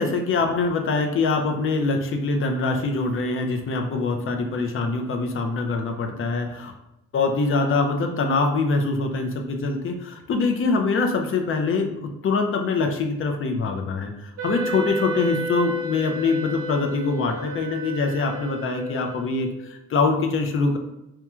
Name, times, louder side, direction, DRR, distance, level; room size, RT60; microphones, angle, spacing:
voice 1, 0.0-6.7 7.1-20.8, left 3 dB, 45° left, 4 dB, 0.5 m, -24 dB
Wind instrument woodwind instrument, 14.4-19.6, right 1 dB, 50° right, 0.8 m, -32 dB
2.9 x 2.2 x 2.3 m, 0.86 s
cardioid pair, 90°, 30 cm